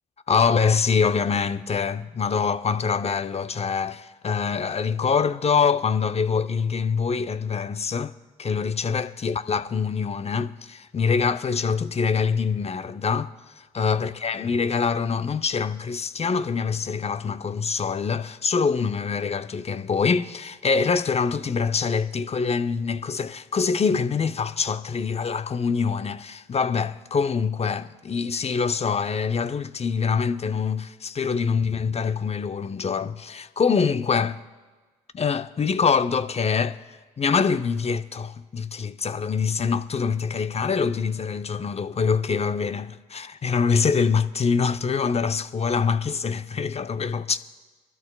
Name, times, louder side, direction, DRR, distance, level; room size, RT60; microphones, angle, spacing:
voice 1, 0.3-8.1 8.4-34.4 35.1-36.8 37.2-47.4, left 5 dB, 35° left, 0.7 m, -24 dB
25.5 x 12.5 x 2.3 m
hypercardioid pair, 50°, 19 cm